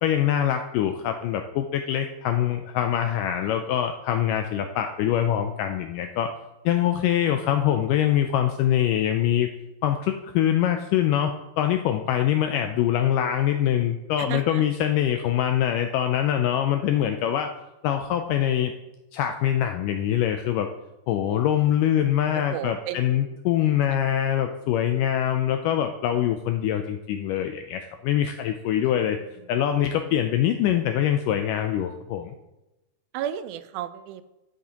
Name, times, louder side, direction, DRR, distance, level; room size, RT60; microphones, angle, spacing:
voice 1, 0.0-6.3 6.7-9.5 9.8-17.5 17.8-18.7 19.1-20.7 21.1-29.2 29.5-32.3, left 10 dB, 85° left, 6 dB, 1.9 m, -24 dB
voice 2, 14.2-14.6 22.3-23.4 23.9-24.0 28.8-28.9 33.1-34.2, right 11 dB, 85° right, 12 dB, 2.3 m, -34 dB
12.0 x 8.2 x 2.9 m, 1.0 s
omnidirectional pair, 4.3 m